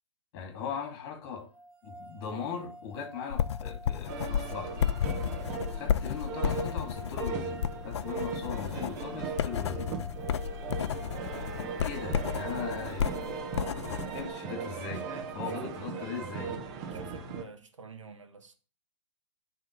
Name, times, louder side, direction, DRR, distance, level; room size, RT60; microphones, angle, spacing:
voice 1, 0.3-1.5 1.8-4.9 5.7-9.9 11.6-13.2 13.5-13.6 14.1-15.0 15.3-16.5, left 6 dB, 40° left, 2.8 m, -39 dB
sound 1, 1.5-11.7, right 1 dB, 10° right, 1.3 m, -50 dB
sound 2, 3.3-14.3, left 9 dB, 65° left, 0.5 m, -32 dB
sound 3, 4.1-17.4, right 5 dB, 40° right, 1.5 m, -38 dB
voice 2, 14.8-16.3 16.9-18.6, right 4 dB, 85° right, 1.5 m, -49 dB
8.1 x 3.7 x 6.7 m
hypercardioid pair, 125°, 16 cm